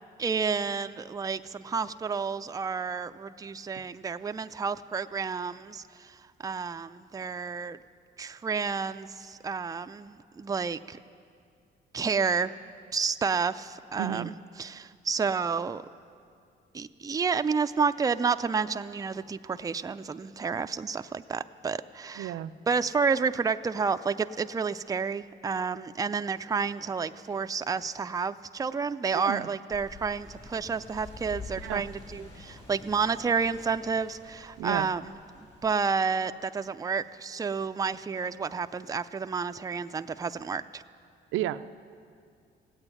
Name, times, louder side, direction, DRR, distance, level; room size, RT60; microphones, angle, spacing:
voice 1, 0.2-7.8 8.2-11.0 11.9-12.5 12.9-14.3 14.6-15.8 16.7-22.4 22.7-35.0 35.4-40.8, right 5 dB, 20° right, 10 dB, 0.4 m, -30 dB
voice 2, 14.0-14.3 22.2-22.5 29.1-29.5 31.6-31.8 34.6-34.9 41.3-41.8, right 13 dB, 85° right, 12 dB, 0.5 m, -32 dB
sound 1, 29.7-35.8, left 3 dB, 30° left, 4.0 m, -47 dB
16.5 x 8.9 x 9.8 m, 2.3 s
cardioid pair, 90°, 20 cm